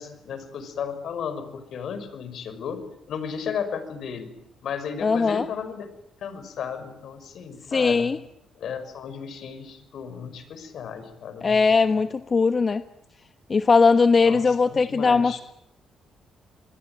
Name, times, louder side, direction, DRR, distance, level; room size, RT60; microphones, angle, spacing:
voice 1, 0.0-2.8 3.1-4.3 4.6-5.9 6.2-8.1 8.6-12.1 14.2-15.4, left 7 dB, 65° left, 11 dB, 5.9 m, -34 dB
voice 2, 5.0-5.5 7.7-8.2 11.4-12.8 13.5-15.4, left 4 dB, 35° left, 10 dB, 1.1 m, -20 dB
27.5 x 22.5 x 9.3 m, 0.82 s
cardioid pair, 90°, 0 cm